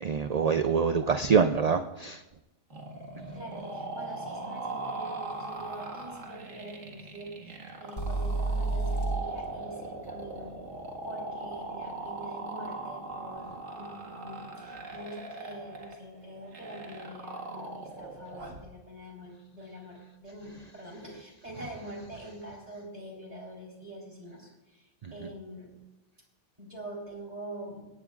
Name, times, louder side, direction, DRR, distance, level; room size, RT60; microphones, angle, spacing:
voice 1, 0.0-2.2 25.0-25.1, right 6 dB, 55° right, 8 dB, 0.4 m, -25 dB
sound 1, 2.7-18.7, right 2 dB, 80° right, 2.1 m, -40 dB
voice 2, 3.3-10.5 11.0-25.7 26.6-27.8, right 1 dB, 35° right, -2 dB, 4.1 m, -44 dB
sound 2, 8.0-11.9, right 3 dB, 60° left, 3.4 m, -33 dB
20.0 x 17.0 x 2.5 m, 1.0 s
omnidirectional pair, 1.3 m